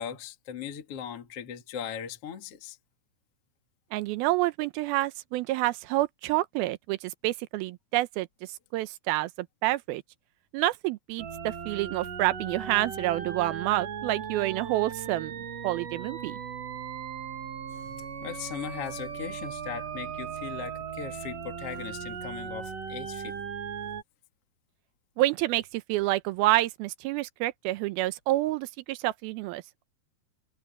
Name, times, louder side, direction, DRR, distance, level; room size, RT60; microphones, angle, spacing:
voice 1, 0.0-2.8 17.7-23.4, left 8 dB, 40° left, 2.5 m, -39 dB
voice 2, 3.9-8.3 8.7-10.0 10.5-16.4 25.2-29.8, right 17 dB, 80° right, 2.3 m, -28 dB
sound 1, 11.2-24.0, right 7 dB, 45° right, 2.5 m, -38 dB
omnidirectional pair, 4.8 m